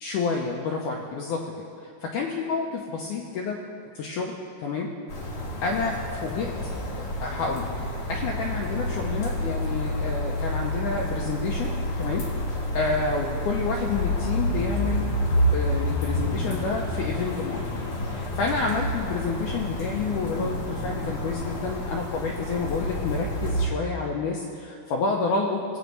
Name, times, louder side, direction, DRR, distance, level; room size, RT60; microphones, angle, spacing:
voice 1, 0.0-1.4 1.8-3.6 4.0-4.3 4.6-4.9 5.6-6.5 7.0-15.1 15.5-17.6 18.1-25.6, left 4 dB, 80° left, -1 dB, 1.8 m, -29 dB
sound 1, 5.1-23.7, left 1 dB, 50° left, 1.2 m, -29 dB
19.0 x 8.1 x 3.2 m, 2.6 s
omnidirectional pair, 4.4 m